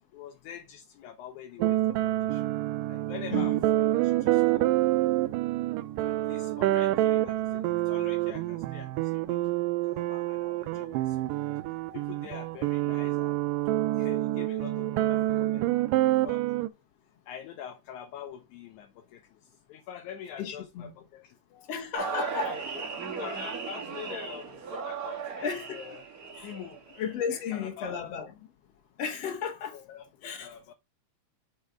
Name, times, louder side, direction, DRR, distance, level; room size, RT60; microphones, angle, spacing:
voice 1, 0.1-2.5 2.9-4.7 6.1-9.4 9.8-11.6 11.9-13.4 13.9-16.5 17.3-21.7 22.0-22.6 22.9-26.0 26.4-26.8 27.3-28.3 29.7-30.7, left 9 dB, 75° left, 1.9 m, -45 dB
sound 1, 1.6-16.7, right 16 dB, 85° right, 2.2 m, -27 dB
voice 2, 20.4-20.9 21.7-22.5 25.4-25.7 26.4-26.5 27.0-28.3 29.0-29.8 30.2-30.5, left 6 dB, 55° left, 2.2 m, -33 dB
sound 2, 21.9-27.1, right 5 dB, 50° right, 1.0 m, -36 dB
6.4 x 4.3 x 4.8 m
omnidirectional pair, 3.8 m